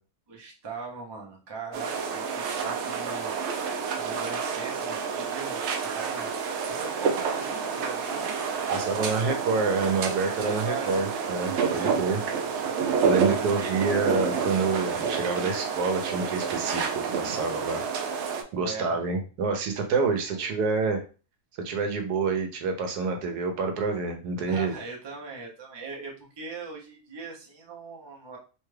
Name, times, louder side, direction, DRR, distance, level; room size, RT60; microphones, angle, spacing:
voice 1, 0.3-3.3 3.6-8.4 8.7-9.4 10.4-11.1 11.7-12.2 13.0-14.0 18.6-19.0 20.3-20.5 24.5-28.4, right 4 dB, 30° right, -1 dB, 0.5 m, -40 dB
sound 1, 1.7-18.4, right 6 dB, 70° right, 0.7 m, -29 dB
voice 2, 8.7-12.2 13.0-17.8 18.5-21.0 21.6-24.7, right 4 dB, 85° right, 5 dB, 1.2 m, -27 dB
3.2 x 2.3 x 3.2 m, 0.34 s
omnidirectional pair, 1.7 m